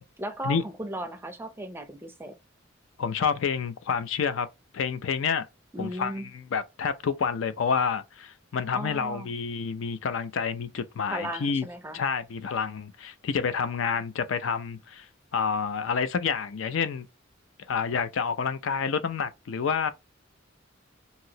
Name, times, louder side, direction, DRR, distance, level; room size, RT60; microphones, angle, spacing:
voice 1, 0.2-2.4 5.7-6.3 8.7-9.3 11.1-12.0, right 1 dB, 10° right, 0.5 m, -36 dB
voice 2, 3.0-4.5 4.7-5.5 5.8-11.7 11.9-15.1 15.3-17.1 17.7-19.9, left 6 dB, 70° left, 0.4 m, -28 dB
2.9 x 2.8 x 2.7 m
head